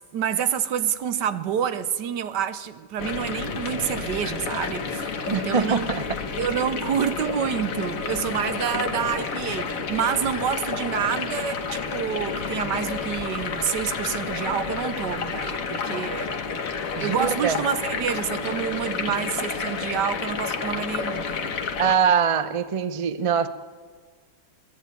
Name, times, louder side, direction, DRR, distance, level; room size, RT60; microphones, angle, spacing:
voice 1, 0.1-5.9 6.3-16.4 17.0-21.6, right 8 dB, 75° right, 1.5 m, -28 dB
sound 1, 3.0-22.0, left 5 dB, 55° left, 1.5 m, -30 dB
voice 2, 5.3-6.2 17.0-17.6 21.8-23.5, right 6 dB, 45° right, 0.4 m, -23 dB
21.5 x 14.5 x 9.2 m
omnidirectional pair, 1.9 m